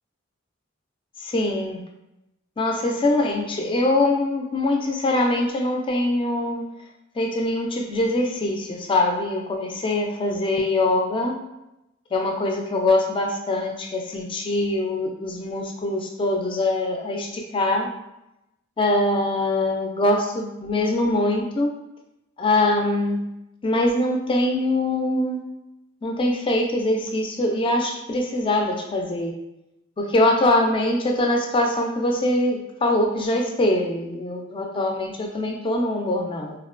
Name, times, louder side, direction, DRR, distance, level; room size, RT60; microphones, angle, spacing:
voice 1, 1.2-1.8 2.6-6.6 7.2-11.4 12.1-17.9 18.8-21.7 22.4-23.2 23.6-25.4 26.0-29.3 30.0-36.6, left 1 dB, 25° left, 2 dB, 0.4 m, -23 dB
3.5 x 2.1 x 2.4 m, 0.91 s
head